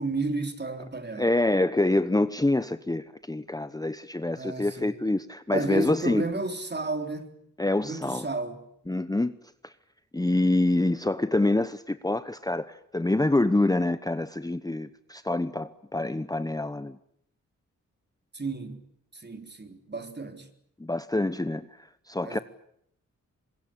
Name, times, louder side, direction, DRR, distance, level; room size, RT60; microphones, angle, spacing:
voice 1, 0.0-1.3 4.3-4.9 5.5-7.3 7.8-8.7 18.3-18.8 19.1-20.5 22.2-22.4, right 3 dB, 35° right, 3.8 m, -32 dB
voice 2, 1.2-6.2 7.6-8.3 8.9-9.3 9.6-9.7 10.1-17.0 20.8-21.7 22.1-22.4, left 2 dB, 10° left, 1.0 m, -26 dB
25.5 x 21.5 x 8.8 m
cardioid pair, 60°, 31 cm